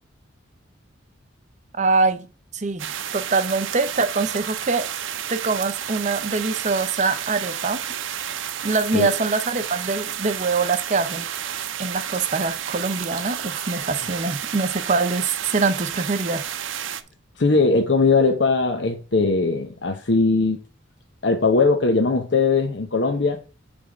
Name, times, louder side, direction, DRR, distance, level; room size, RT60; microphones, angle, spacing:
voice 1, 1.8-2.3 2.5-4.9 5.3-7.8 8.6-16.5, right 4 dB, 35° right, 0.6 m, -24 dB
sound 1, 2.8-17.0, right 9 dB, 80° right, 0.7 m, -31 dB
voice 2, 17.4-20.6 21.2-23.4, left 3 dB, 65° left, 0.8 m, -20 dB
7.3 x 3.5 x 6.2 m
head